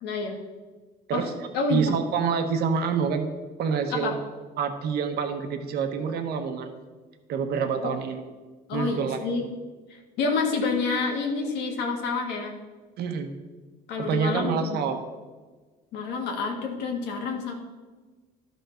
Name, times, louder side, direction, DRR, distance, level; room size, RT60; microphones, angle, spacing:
voice 1, 0.0-0.4 1.1-1.3 1.5-1.8 3.9-4.1 8.7-9.5 9.9-12.5 13.9-14.8 15.9-17.5, left 4 dB, 90° left, 2 dB, 1.7 m, -28 dB
voice 2, 1.7-3.3 3.6-4.2 4.6-6.7 7.3-8.2 8.7-9.2 13.0-13.3 14.0-15.0, right 6 dB, 70° right, 6 dB, 1.1 m, -27 dB
12.0 x 5.8 x 4.4 m, 1.3 s
cardioid pair, 110°, 17 cm